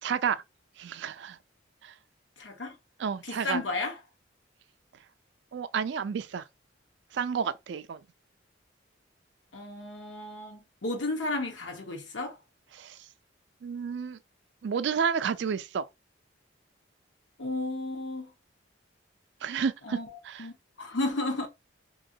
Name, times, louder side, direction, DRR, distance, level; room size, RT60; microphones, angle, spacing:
voice 1, 0.0-0.4 0.8-1.4 1.8-2.0 3.0-3.6 5.5-6.4 7.1-8.0 12.7-13.1 13.6-14.2 14.6-15.9 19.4-20.0 20.2-20.5, right 6 dB, 65° right, 0.3 m, -31 dB
voice 2, 2.4-2.7 3.3-3.9 9.5-12.4 17.4-18.3 19.9-20.1 20.4-21.5, left 2 dB, 80° left, 1.0 m, -33 dB
3.0 x 2.8 x 2.6 m
head